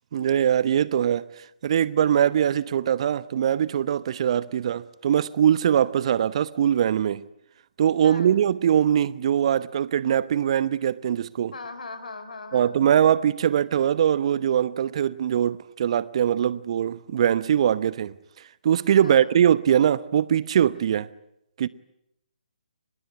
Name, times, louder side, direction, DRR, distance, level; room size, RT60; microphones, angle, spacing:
voice 1, 0.1-1.3 1.6-7.2 7.8-11.5 12.5-18.1 18.6-21.1 21.6-21.7, right 9 dB, 45° right, 0.9 m, -22 dB
voice 2, 8.0-8.4 11.5-12.8 19.0-19.3, left 3 dB, 70° left, 4.7 m, -39 dB
25.5 x 21.0 x 9.8 m
figure-of-eight pair, 140°, 4 cm